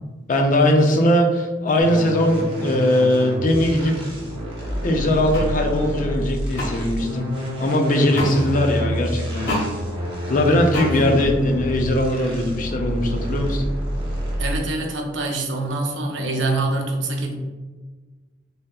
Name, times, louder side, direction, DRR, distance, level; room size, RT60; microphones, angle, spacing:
voice 1, 0.3-3.9 4.8-7.3 7.6-9.6 10.3-13.6, left 1 dB, 45° left, 3 dB, 0.4 m, -20 dB
sound 1, 1.8-14.8, equal, 30° right, 0.8 m, -28 dB
sound 2, 5.3-5.5 6.6-6.7 8.1-8.3 9.5-9.7 10.7-10.9, left 1 dB, 65° left, 1.1 m, -25 dB
voice 2, 8.2-8.6 10.9-11.1 14.4-17.4, right 2 dB, 80° right, 2 dB, 0.6 m, -25 dB
3.4 x 2.7 x 2.3 m, 1.3 s
head